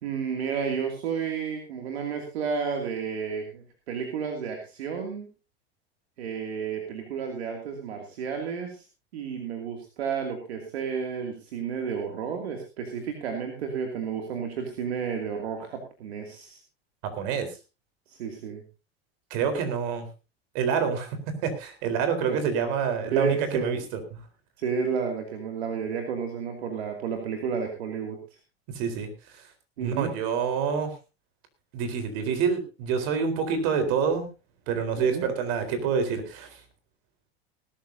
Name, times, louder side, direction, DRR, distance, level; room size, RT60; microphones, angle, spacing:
voice 1, 0.0-5.3 6.2-8.8 9.1-16.6 18.1-18.6 22.3-22.4 23.1-23.7 24.6-28.2 29.8-30.1 35.0-35.2, right 6 dB, 80° right, 3 dB, 2.7 m, -31 dB
voice 2, 17.2-17.5 19.3-20.1 20.5-21.2 21.4-23.8 24.1-24.2 28.7-29.1 29.8-30.9 31.7-34.3 34.7-36.5, right 6 dB, 65° right, 7 dB, 4.1 m, -27 dB
19.5 x 13.5 x 2.8 m, 0.30 s
hypercardioid pair, 90°, 31 cm